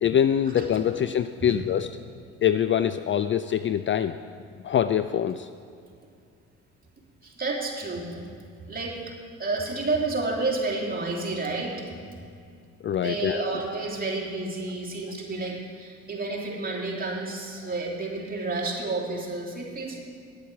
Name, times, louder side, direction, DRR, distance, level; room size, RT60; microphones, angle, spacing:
voice 1, 0.0-1.9 2.4-4.2 4.6-5.5 12.8-13.4, left 9 dB, 35° left, 11 dB, 0.4 m, -24 dB
voice 2, 7.2-8.2 8.6-9.1 9.4-11.8 13.0-20.0, right 3 dB, 25° right, -2 dB, 2.9 m, -30 dB
9.8 x 8.3 x 7.3 m, 2.3 s
supercardioid pair, 65°, 33 cm